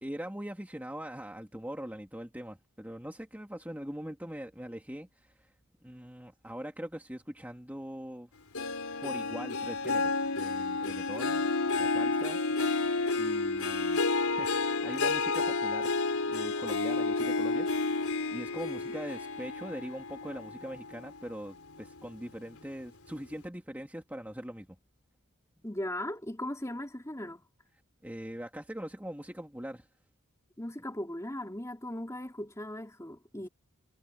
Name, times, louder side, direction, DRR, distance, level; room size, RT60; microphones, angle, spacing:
voice 1, 0.0-5.5 5.8-8.3 9.0-11.5 11.8-12.6 13.1-14.0 14.3-15.9 16.3-24.7 28.0-29.9, equal, 5° right, 2.1 m, -42 dB
Harp, 8.5-21.3 21.7-22.1 22.6-22.7, left 3 dB, 80° left, 4.0 m, -31 dB
voice 2, 25.6-27.4 30.6-33.5, left 1 dB, 15° left, 3.3 m, -38 dB
head